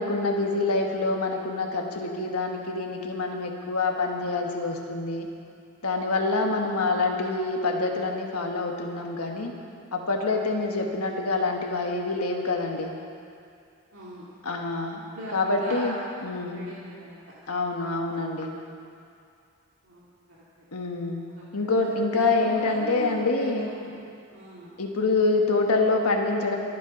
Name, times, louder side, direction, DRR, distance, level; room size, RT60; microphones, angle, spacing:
voice 1, 0.0-5.3 5.8-9.5 9.9-12.9 14.4-15.0 15.3-16.0 16.2-16.6 17.5-18.5 20.7-21.2 21.5-23.7 24.8-26.6, left 3 dB, 90° left, 1 dB, 1.4 m, -26 dB
voice 2, 13.9-14.3 15.1-16.2 16.5-17.2 19.8-20.1 20.6-20.7 21.3-24.0 24.3-24.7, equal, 65° right, -8 dB, 2.2 m, -39 dB
23.5 x 8.5 x 5.3 m, 2.4 s
head